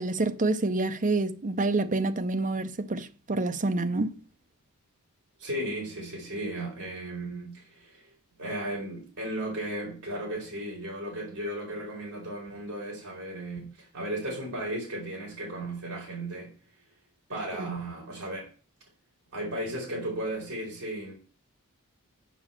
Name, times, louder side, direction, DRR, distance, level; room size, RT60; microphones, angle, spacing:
voice 1, 0.0-4.1, right 2 dB, 35° right, 0.7 m, -27 dB
voice 2, 5.4-8.1 8.4-16.5 17.3-18.5 19.3-21.1, right 1 dB, 55° right, 4.7 m, -35 dB
7.2 x 6.2 x 7.3 m
head